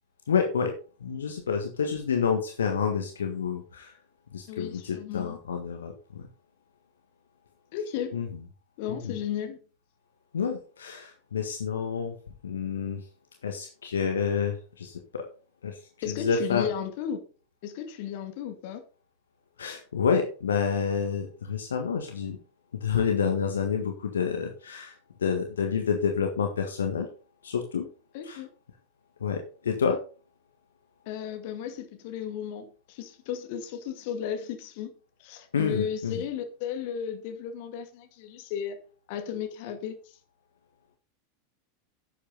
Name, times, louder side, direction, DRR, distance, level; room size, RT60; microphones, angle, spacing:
voice 1, 0.3-0.7 1.0-4.0 4.3-6.3 8.1-8.3 8.9-9.2 10.3-12.1 12.4-13.1 13.4-15.3 15.6-15.8 16.1-16.7 19.6-22.4 22.8-27.1 27.4-27.9 28.2-28.4 29.2-30.0 35.5-36.2, left 6 dB, 70° left, 1.6 m, -28 dB
voice 2, 4.5-5.4 7.7-8.1 8.8-9.6 16.0-17.3 17.6-18.8 28.1-28.5 31.1-34.9 35.2-38.8 39.1-40.2, left 8 dB, 50° left, 2.3 m, -34 dB
11.0 x 8.5 x 4.0 m
figure-of-eight pair, 85°, 0 cm